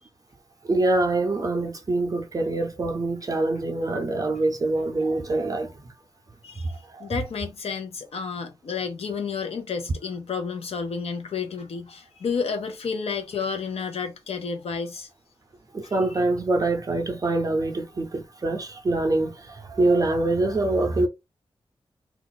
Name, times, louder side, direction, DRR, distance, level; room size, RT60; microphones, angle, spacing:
voice 1, 0.6-5.9 6.6-7.1 15.7-21.1, right 2 dB, 35° right, 0.5 m, -25 dB
voice 2, 6.4-15.1 15.8-15.9, left 5 dB, 90° left, 0.8 m, -31 dB
2.4 x 2.4 x 3.9 m
wide cardioid pair, 160°, 10 cm